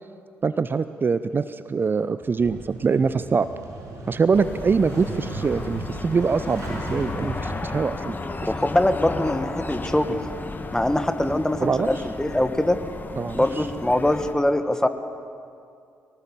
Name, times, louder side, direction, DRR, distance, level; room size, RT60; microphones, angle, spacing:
voice 1, 0.4-3.5 4.1-8.1 11.6-11.9 13.2-13.6, right 5 dB, 35° right, 13 dB, 0.6 m, -24 dB
Motorcycle / Engine starting, 2.2-8.1, right 2 dB, 50° right, 6.5 m, -37 dB
sound 1, 4.3-14.3, left 3 dB, 30° left, 1.8 m, -34 dB
voice 2, 8.4-10.2 10.7-12.8 13.3-14.9, left 1 dB, 10° left, 9 dB, 1.7 m, -23 dB
23.0 x 18.5 x 7.3 m, 2.4 s
figure-of-eight pair, 40°, 6 cm